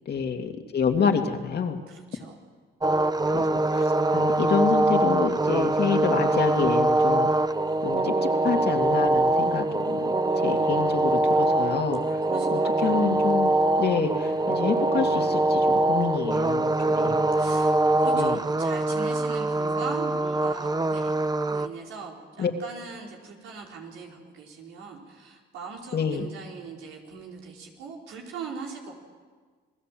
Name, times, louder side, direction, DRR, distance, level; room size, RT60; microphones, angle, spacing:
voice 1, 0.1-1.8 3.3-7.3 7.8-10.1 10.4-12.2 12.5-13.5 13.8-17.2 18.1-18.4 22.4-22.5 25.9-26.3, left 6 dB, 55° left, 5 dB, 2.5 m, -28 dB
voice 2, 1.9-2.4 7.9-8.0 10.2-10.7 12.0-13.0 16.7-21.1 21.5-28.9, right 5 dB, 90° right, -1 dB, 4.8 m, -40 dB
sound 1, 2.8-21.7, right 2 dB, 20° right, 1.0 m, -23 dB
28.5 x 19.5 x 7.7 m, 1.5 s
cardioid pair, 90°, 20 cm